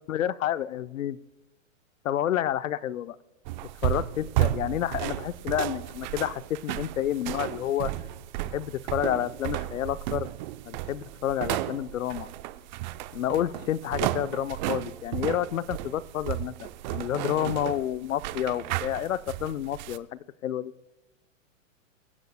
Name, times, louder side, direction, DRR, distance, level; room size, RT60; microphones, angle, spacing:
voice 1, 0.1-1.2 2.0-3.2 3.8-7.9 8.5-10.3 10.7-12.3 13.1-20.1 20.4-20.7, left 11 dB, 80° left, 14 dB, 0.7 m, -29 dB
sound 1, 3.4-20.0, right 15 dB, 35° right, 0.6 m, -33 dB
25.0 x 15.5 x 2.2 m, 1.0 s
hypercardioid pair, 135°, 40 cm